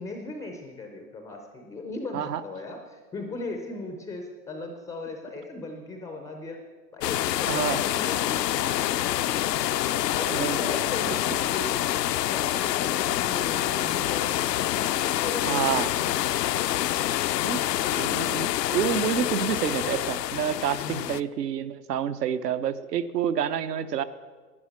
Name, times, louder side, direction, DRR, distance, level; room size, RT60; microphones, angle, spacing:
voice 1, 0.0-6.6 6.9-9.7 10.1-11.9 12.3-16.3 20.7-21.2, left 2 dB, 5° left, 4 dB, 0.4 m, -38 dB
sound 1, 7.0-21.2, left 13 dB, 75° left, 0.5 m, -27 dB
voice 2, 7.5-7.8 10.3-10.6 15.4-15.9 17.4-17.6 17.9-24.0, right 8 dB, 70° right, 10 dB, 0.9 m, -28 dB
11.0 x 9.8 x 6.0 m, 1.4 s
hypercardioid pair, 110°, 50 cm